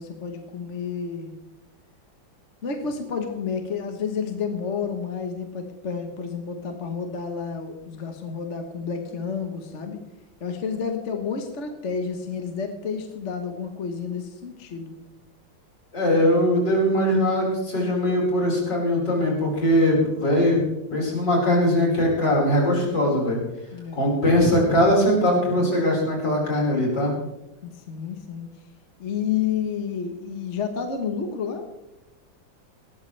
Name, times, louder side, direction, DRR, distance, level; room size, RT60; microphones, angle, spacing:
voice 1, 0.0-1.3 2.6-10.0 10.4-14.9 23.7-24.0 27.6-28.5 29.0-31.7, left 6 dB, 40° left, 5 dB, 1.3 m, -30 dB
voice 2, 15.9-20.6 20.9-23.4 24.0-27.1, equal, 65° left, -3 dB, 5.5 m, -21 dB
19.0 x 13.5 x 3.3 m, 0.93 s
omnidirectional pair, 2.1 m